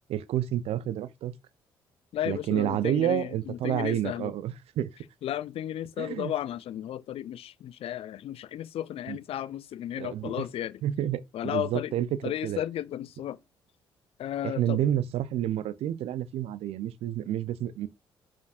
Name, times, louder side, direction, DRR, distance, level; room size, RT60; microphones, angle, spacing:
voice 1, 0.1-1.3 2.3-4.9 6.0-6.3 9.1-9.2 10.0-10.5 10.8-12.6 14.4-17.9, right 11 dB, 60° right, 0.6 m, -29 dB
voice 2, 2.1-4.3 5.2-10.8 11.3-11.9 12.2-13.4 14.2-14.8, left 11 dB, 55° left, 0.5 m, -34 dB
9.3 x 5.1 x 2.5 m
hypercardioid pair, 45°, 12 cm